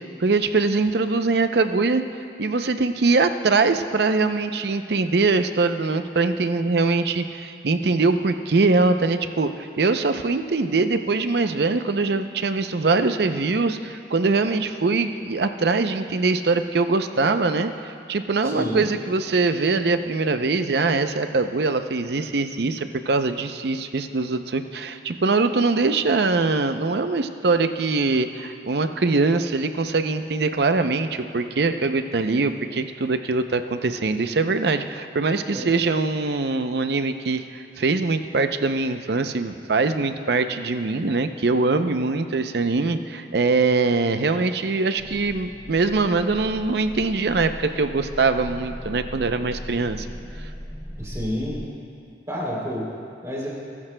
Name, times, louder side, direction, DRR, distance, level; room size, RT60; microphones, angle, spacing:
voice 1, 0.2-2.0 2.4-50.1, right 3 dB, 65° right, 9 dB, 0.6 m, -22 dB
voice 2, 18.4-18.8 35.4-35.7 51.0-51.6 52.3-52.9 53.2-53.5, equal, 15° right, -5 dB, 3.1 m, -29 dB
sound 1, 45.0-51.7, equal, 5° left, 0.4 m, -38 dB
21.5 x 13.5 x 2.2 m, 2.4 s
head